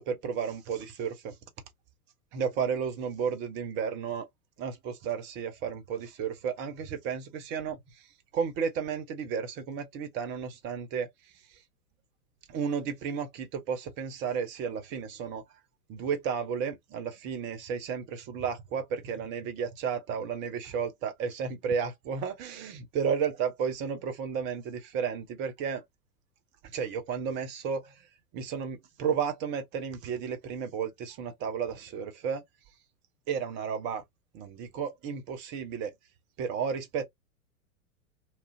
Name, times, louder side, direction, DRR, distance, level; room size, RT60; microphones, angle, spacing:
voice 1, 0.0-1.3 2.3-4.3 4.6-7.8 8.3-11.1 12.5-15.4 15.9-25.8 26.7-27.9 28.3-32.4 33.3-34.0 34.3-35.9 36.4-37.0, right 7 dB, 25° right, 0.7 m, -33 dB
2.9 x 2.4 x 2.6 m
figure-of-eight pair, 100°, 45 cm